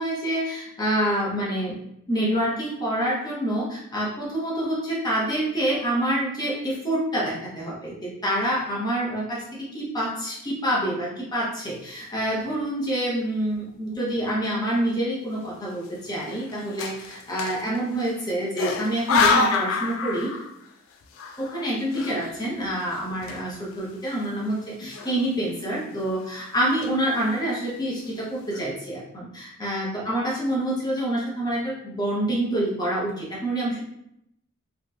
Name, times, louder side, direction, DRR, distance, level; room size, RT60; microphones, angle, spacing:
voice 1, 0.0-1.8 2.1-20.3 21.4-33.8, right 1 dB, 20° left, -5 dB, 0.8 m, -27 dB
sound 1, 12.1-12.6 13.2-13.3 13.5-14.2 14.7-14.9 15.8-18.2 18.6-20.7 21.0-23.9 24.1-24.3 24.8-25.5 25.9-26.2 26.6-27.2 27.8-27.9 28.1-28.6, left 4 dB, 75° left, 0.4 m, -28 dB
3.0 x 2.6 x 2.3 m, 0.76 s
head